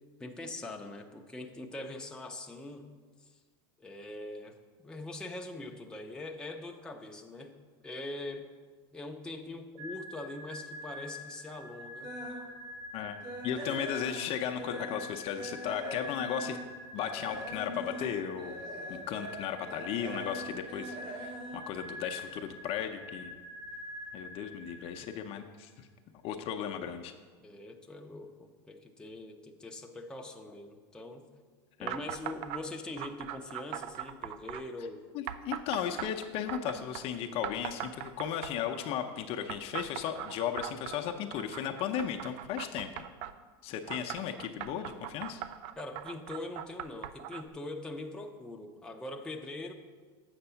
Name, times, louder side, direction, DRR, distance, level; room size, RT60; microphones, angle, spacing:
voice 1, 0.2-2.9 3.8-4.6 4.8-7.6 7.8-8.5 8.9-12.2 27.4-31.3 31.8-35.1 45.8-49.7, left 2 dB, 5° left, 2 dB, 0.7 m, -42 dB
sound 1, 9.8-25.4, left 1 dB, 85° right, 2.7 m, -45 dB
sound 2, 12.0-12.5 12.9-15.1 15.3-22.6 22.9-23.2 23.7-23.8 24.1-24.2, right 1 dB, 40° right, 1.8 m, -43 dB
voice 2, 13.4-16.6 16.9-18.6 18.9-23.4 24.1-25.9 26.2-27.1 31.8-32.0 35.1-42.9 43.6-45.4, left 9 dB, 45° left, 4 dB, 0.6 m, -35 dB
sound 3, 31.9-32.6 33.0-34.6 35.3-37.1 37.4-38.7 39.5-43.3 43.9-47.5, right 11 dB, 55° right, 0.4 m, -40 dB
7.9 x 6.0 x 5.7 m, 1.5 s
supercardioid pair, 125°, 14 cm